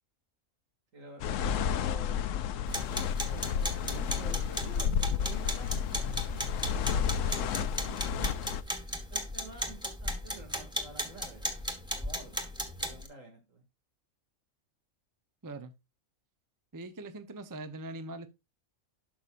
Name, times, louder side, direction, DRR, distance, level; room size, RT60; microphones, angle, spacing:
voice 1, 0.9-2.2 2.8-6.2 7.2-8.4 9.1-11.4 11.9-13.6, right 2 dB, 75° right, 2.6 m, -49 dB
sound 1, 1.2-8.6, left 8 dB, 75° left, 1.0 m, -31 dB
sound 2, 2.7-13.1, equal, 5° right, 1.2 m, -36 dB
voice 2, 15.4-15.7 16.7-18.3, right 2 dB, 20° right, 0.6 m, -41 dB
12.0 x 5.6 x 2.5 m
omnidirectional pair, 1.4 m